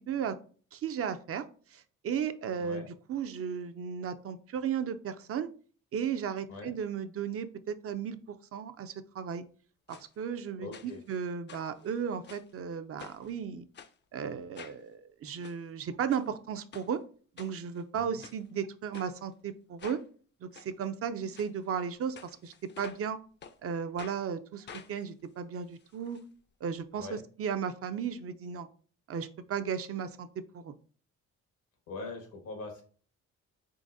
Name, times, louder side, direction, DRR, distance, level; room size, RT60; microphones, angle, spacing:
voice 1, 0.1-0.4 0.7-1.4 1.7-5.5 5.9-8.2 8.5-9.4 9.9-13.6 14.1-17.0 17.4-20.0 20.4-23.2 23.6-26.2 26.6-28.7 29.1-30.3 30.5-30.7, right 7 dB, 50° right, 10 dB, 0.5 m, -35 dB
voice 2, 2.6-2.9 6.5-6.7 10.6-11.0 17.9-18.2 27.0-27.2 31.9-32.8, left 3 dB, 90° left, 4 dB, 1.5 m, -42 dB
sound 1, 9.9-10.1 10.7-11.2 11.5-12.5 13.0-13.3 13.7-13.9 14.5-14.8 15.3-15.6 16.1-16.3 16.7-16.9 17.4-17.8 18.2-18.4 18.9-19.1 19.8-20.0 20.5-20.7 21.3-21.5 22.2-23.1 23.4-23.6 24.0-24.2 24.7-26.2 26.5-26.6 26.8-26.9, left 7 dB, 35° left, 0.4 m, -49 dB
4.0 x 3.8 x 2.6 m, 0.41 s
cardioid pair, 90°, 30 cm